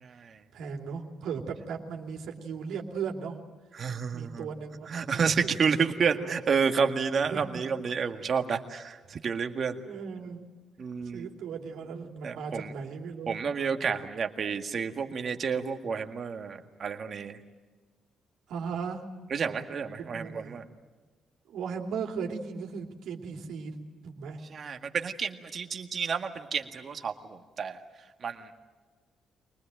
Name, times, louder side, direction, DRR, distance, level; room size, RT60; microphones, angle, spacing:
voice 1, 0.0-0.4 3.8-4.5 4.9-9.8 10.8-11.3 12.2-12.7 13.3-17.4 19.3-20.6 24.5-27.8 28.2-28.5, right 6 dB, 50° right, 6 dB, 1.9 m, -30 dB
voice 2, 0.5-3.4 4.1-5.6 6.0-6.3 7.3-7.6 9.9-10.4 11.0-13.4 18.5-19.0 20.0-20.6 21.5-23.7 24.0-24.4, right 6 dB, 80° right, 2 dB, 2.9 m, -37 dB
24.0 x 19.5 x 9.0 m, 1.3 s
cardioid pair, 90°, 0 cm